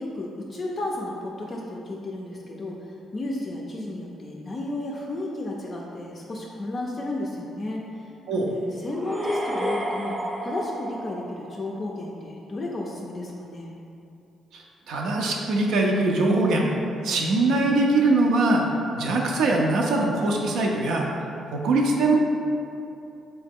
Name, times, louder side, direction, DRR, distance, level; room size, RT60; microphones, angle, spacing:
voice 1, 0.0-2.8 3.1-10.1 10.4-13.7, left 2 dB, 35° left, -2 dB, 0.4 m, -33 dB
sound 1, 8.9-11.9, equal, 15° right, 0.6 m, -30 dB
voice 2, 14.5-16.7 17.0-18.7 18.9-21.1 21.5-22.2, right 2 dB, 80° right, 0 dB, 0.4 m, -22 dB
3.1 x 2.8 x 3.5 m, 2.6 s
cardioid pair, 90°, 0 cm